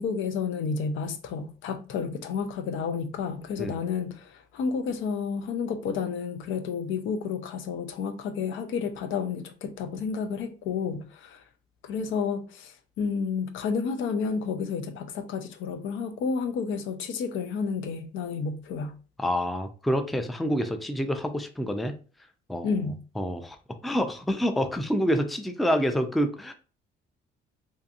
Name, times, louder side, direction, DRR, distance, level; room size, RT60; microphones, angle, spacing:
voice 1, 0.0-11.4 11.8-19.0 22.6-23.0, left 5 dB, 80° left, 0.5 m, -31 dB
voice 2, 19.2-21.9 22.5-22.7 23.2-23.6 23.8-26.5, equal, ahead, 0.3 m, -27 dB
2.7 x 2.5 x 2.4 m
cardioid pair, 90°, 20 cm